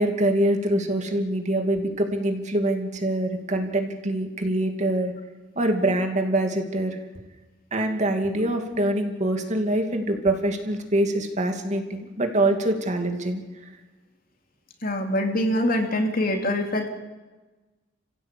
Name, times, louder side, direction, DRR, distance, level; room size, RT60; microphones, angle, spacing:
voice 1, 0.0-5.1 5.6-7.0 7.7-13.4, right 1 dB, 40° right, 4 dB, 2.5 m, -24 dB
voice 2, 14.8-16.9, left 1 dB, 50° left, 3 dB, 3.1 m, -24 dB
29.0 x 16.0 x 8.5 m, 1.2 s
head